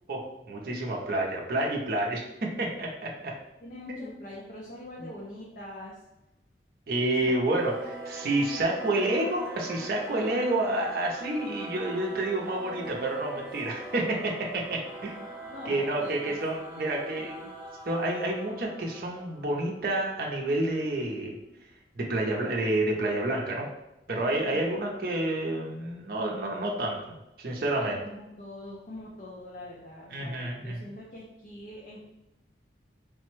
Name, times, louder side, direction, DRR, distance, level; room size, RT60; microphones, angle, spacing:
voice 1, 0.1-3.4 3.9-4.1 5.0-5.1 6.9-15.2 15.6-17.3 17.9-21.4 22.0-23.7 24.1-27.0 27.4-28.0 30.1-30.9, right 1 dB, 55° right, -2 dB, 0.6 m, -29 dB
voice 2, 3.6-5.9 7.2-7.3 15.5-17.5 24.5-24.8 27.7-32.0, left 1 dB, 45° left, -4 dB, 0.5 m, -44 dB
Singing / Musical instrument, 7.5-20.4, right 1 dB, 15° right, 0.8 m, -42 dB
3.2 x 2.1 x 3.1 m, 0.93 s
head